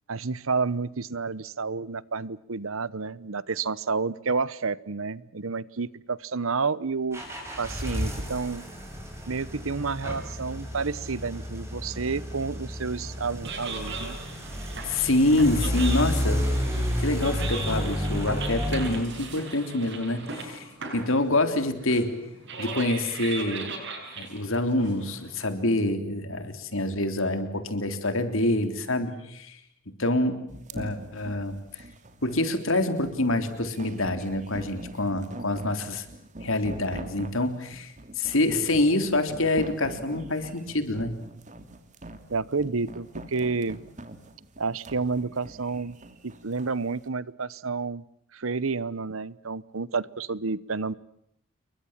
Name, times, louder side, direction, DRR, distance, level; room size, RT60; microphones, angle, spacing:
voice 1, 0.1-7.2 7.6-8.6 9.3-14.2 42.3-43.8 44.6-45.9 46.2-48.0 48.3-50.9, right 4 dB, 75° right, 20 dB, 0.9 m, -30 dB
sound 1, 7.1-19.0, equal, 10° right, 6.8 m, -31 dB
sound 2, 13.2-25.4, right 4 dB, 55° right, 7.7 m, -39 dB
voice 2, 14.9-16.5 17.0-20.7 20.9-22.2 22.6-23.8 24.2-29.6 30.0-30.4 30.7-31.8 32.2-36.0 36.4-41.1, left 2 dB, 70° left, 9 dB, 3.5 m, -26 dB
sound 3, 30.5-46.8, right 1 dB, 35° right, 2.7 m, -43 dB
29.0 x 23.0 x 7.4 m, 0.74 s
head